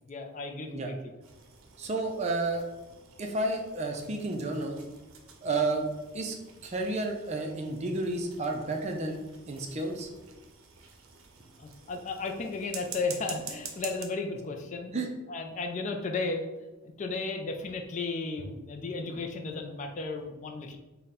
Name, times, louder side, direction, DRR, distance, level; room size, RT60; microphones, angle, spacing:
voice 1, 0.1-1.0 11.6-14.9 15.3-16.5 16.8-20.8, left 3 dB, 35° left, 3 dB, 0.4 m, -34 dB
sound 1, 1.2-14.1, right 6 dB, 90° right, 0.5 m, -48 dB
voice 2, 1.8-2.7 3.2-4.8 5.4-5.9 6.1-6.4 6.6-9.2 9.5-10.1 14.9-15.1, right 2 dB, 35° right, 3 dB, 0.4 m, -31 dB
3.7 x 2.2 x 4.1 m, 1.1 s
head